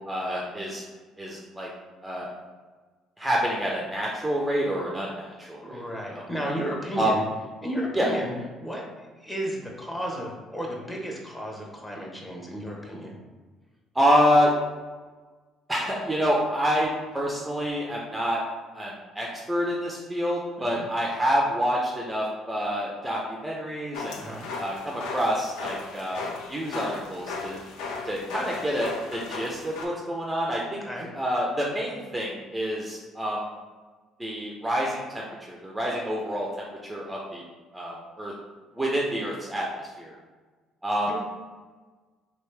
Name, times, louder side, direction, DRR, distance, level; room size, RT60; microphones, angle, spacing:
voice 1, 0.1-0.8 1.2-1.7 2.0-2.3 3.2-5.8 6.1-6.2 7.0-7.1 8.0-8.1 13.9-14.5 15.7-18.4 18.7-24.2 24.6-26.2 26.5-27.6 28.0-30.8 31.2-33.4 34.2-37.4 37.7-38.3 38.7-40.2 40.8-41.1, equal, 10° right, -3 dB, 0.6 m, -27 dB
voice 2, 5.6-7.2 7.6-13.2 20.6-20.8 24.2-24.5 30.8-31.1 41.0-41.2, equal, 15° left, -2 dB, 1.0 m, -33 dB
sound 1, 23.9-29.9, left 3 dB, 80° left, 0.5 m, -36 dB
3.1 x 3.0 x 3.3 m, 1.3 s
supercardioid pair, 80°, 0 cm